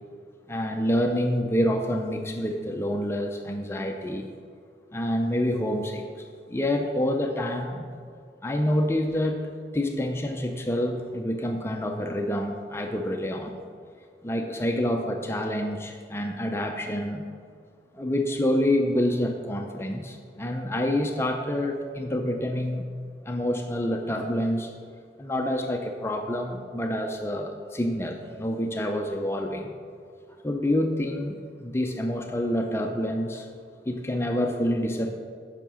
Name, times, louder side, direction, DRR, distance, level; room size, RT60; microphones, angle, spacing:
voice 1, 0.5-4.3 4.9-7.9 8.4-13.6 14.2-17.2 17.9-22.9 23.2-24.7 25.2-29.7 30.4-33.5 33.9-35.2, left 1 dB, 15° left, 3 dB, 0.5 m, -27 dB
9.0 x 5.7 x 6.2 m, 2.2 s
head